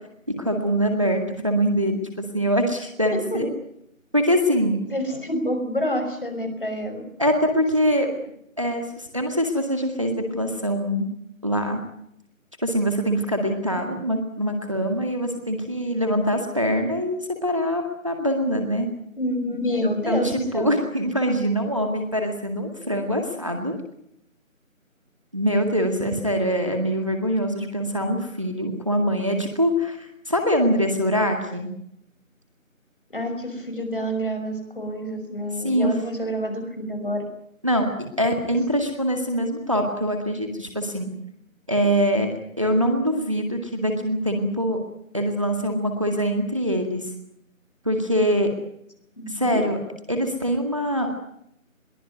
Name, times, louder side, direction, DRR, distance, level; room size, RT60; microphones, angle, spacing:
voice 1, 0.4-3.5 4.1-4.8 7.2-8.1 8.6-11.1 11.4-11.8 12.6-18.9 19.8-23.7 25.3-31.7 35.6-35.9 37.6-37.9 38.2-41.1 41.7-42.3 42.6-44.8 45.1-47.1 47.9-48.5 49.3-49.8 50.1-51.1, equal, 25° right, 4 dB, 2.0 m, -23 dB
voice 2, 4.9-7.0 19.2-20.7 33.1-37.2 49.2-49.6, equal, 40° left, 6 dB, 5.7 m, -28 dB
22.0 x 21.0 x 9.4 m, 0.75 s
figure-of-eight pair, 180°, 41 cm